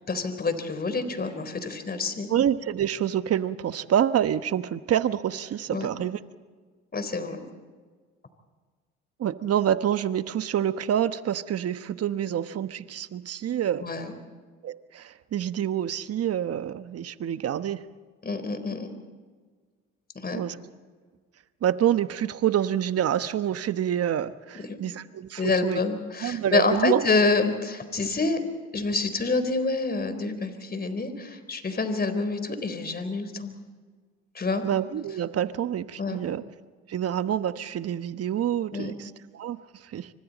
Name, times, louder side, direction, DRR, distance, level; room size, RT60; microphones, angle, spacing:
voice 1, 0.1-2.3 5.7-5.9 6.9-7.4 13.8-14.1 18.2-18.9 20.1-20.4 24.7-24.8 25.4-28.4 28.7-33.5 34.3-34.6 36.0-36.2 38.7-38.9, left 3 dB, 30° left, 9 dB, 4.1 m, -27 dB
voice 2, 2.3-6.2 9.2-13.9 14.6-17.8 20.3-20.6 21.6-25.8 26.2-27.0 34.6-36.4 36.9-40.1, right 10 dB, 50° right, 12 dB, 1.2 m, -27 dB
28.0 x 25.0 x 4.2 m, 1.5 s
hypercardioid pair, 65°, 30 cm